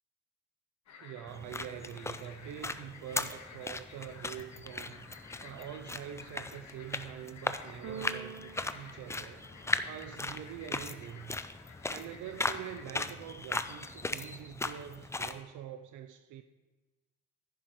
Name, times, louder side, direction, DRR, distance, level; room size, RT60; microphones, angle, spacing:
sound 1, 0.9-12.8, left 5 dB, 65° left, 1.1 m, -54 dB
voice 1, 1.0-5.1 5.4-9.4 9.8-11.4 11.9-16.4, right 10 dB, 80° right, 0.5 m, -45 dB
sound 2, 1.3-15.4, left 2 dB, 10° left, 0.4 m, -38 dB
Keyboard (musical), 7.8-9.9, right 6 dB, 50° right, 0.8 m, -46 dB
10.5 x 10.0 x 3.1 m
cardioid pair, 90°, 30 cm